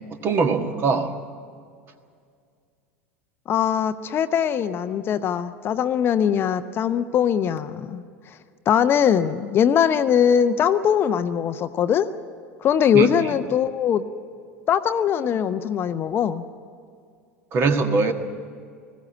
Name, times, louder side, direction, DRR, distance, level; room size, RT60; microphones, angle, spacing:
voice 1, 0.2-1.2 12.9-13.3 17.5-18.1, right 4 dB, 35° right, 7 dB, 1.6 m, -22 dB
voice 2, 3.5-8.0 8.7-12.1 12.6-14.0 14.7-16.4, left 8 dB, 35° left, 11 dB, 0.7 m, -21 dB
20.0 x 16.0 x 8.7 m, 2.2 s
figure-of-eight pair, 80°, 7 cm